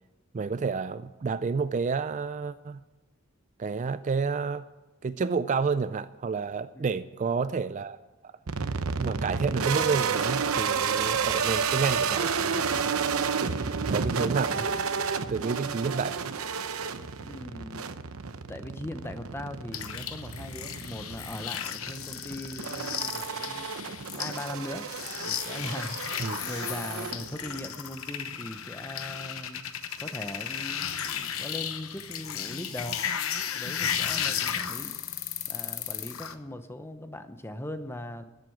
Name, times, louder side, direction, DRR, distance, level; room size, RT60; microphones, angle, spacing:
voice 1, 0.3-2.8 3.6-4.6 5.0-8.0 9.0-12.9 13.4-14.7 15.3-16.4 26.2-26.4, right 5 dB, 35° right, 14 dB, 0.3 m, -30 dB
sound 1, 8.5-27.7, right 6 dB, 80° right, 0.8 m, -31 dB
voice 2, 17.2-17.9 18.5-23.7 24.1-24.9 25.2-29.7 30.0-33.0 33.5-35.0 35.5-38.2, left 1 dB, 10° left, 9 dB, 0.8 m, -40 dB
sound 2, 19.7-36.3, left 8 dB, 70° left, 1.0 m, -34 dB
13.5 x 7.9 x 9.1 m, 1.2 s
head